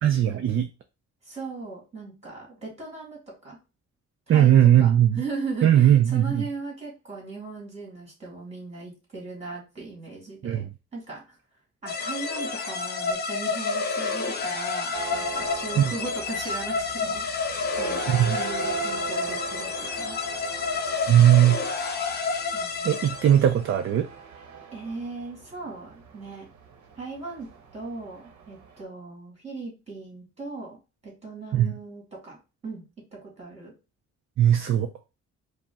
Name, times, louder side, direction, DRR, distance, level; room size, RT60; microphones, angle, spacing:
voice 1, 0.0-0.7 4.3-5.2 5.6-6.4 10.4-10.7 15.8-15.9 18.1-18.4 21.1-21.6 22.8-24.1 31.5-31.7 34.4-34.9, right 11 dB, 45° right, 6 dB, 0.4 m, -19 dB
voice 2, 1.2-3.6 4.3-10.7 10.9-11.4 11.8-20.2 22.5-23.0 24.7-26.5 27.0-30.8 31.0-32.4 32.6-32.8 33.1-33.7, right 3 dB, 20° right, -3 dB, 2.1 m, -38 dB
sound 1, 11.9-23.5, left 4 dB, 35° left, 0.5 m, -30 dB
sound 2, 14.9-28.8, right 5 dB, 70° right, 0.9 m, -39 dB
5.0 x 2.1 x 3.5 m, 0.29 s
wide cardioid pair, 160°, 30 cm